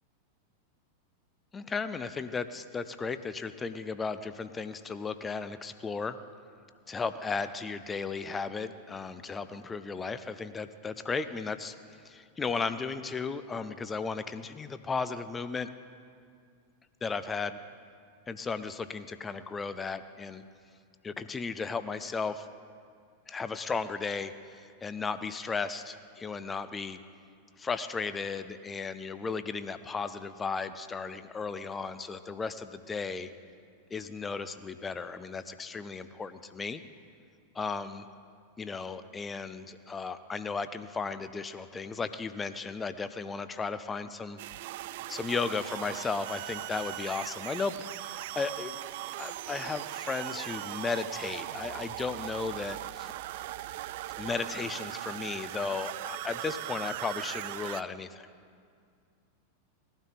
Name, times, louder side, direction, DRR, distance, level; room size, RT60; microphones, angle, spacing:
voice 1, 1.5-6.2 6.9-11.8 12.0-15.7 17.0-17.6 18.3-20.4 21.0-22.5 23.3-27.0 27.6-33.3 33.9-36.8 37.5-38.0 38.6-44.4 45.1-48.8 49.2-53.1 54.2-58.3, left 4 dB, 15° left, 12 dB, 0.6 m, -35 dB
sound 1, 44.4-57.8, right 15 dB, 50° right, 0.3 m, -39 dB
20.0 x 12.5 x 4.1 m, 2.2 s
figure-of-eight pair, 90°, 0 cm